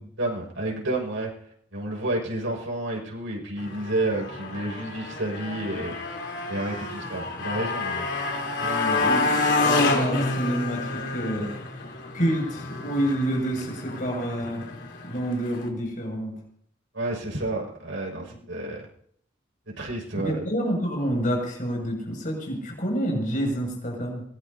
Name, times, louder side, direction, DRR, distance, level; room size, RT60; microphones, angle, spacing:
voice 1, 0.2-1.3 1.7-5.9 6.5-8.1 16.9-18.8 19.7-20.4, right 2 dB, 80° right, -2 dB, 6.1 m, -30 dB
Motorcycle, 3.6-15.7, left 3 dB, 60° left, 3.8 m, -29 dB
voice 2, 8.6-11.5 12.1-14.6 15.0-16.4 20.2-24.2, equal, 45° left, 0 dB, 6.9 m, -28 dB
23.0 x 20.0 x 2.9 m, 0.66 s
head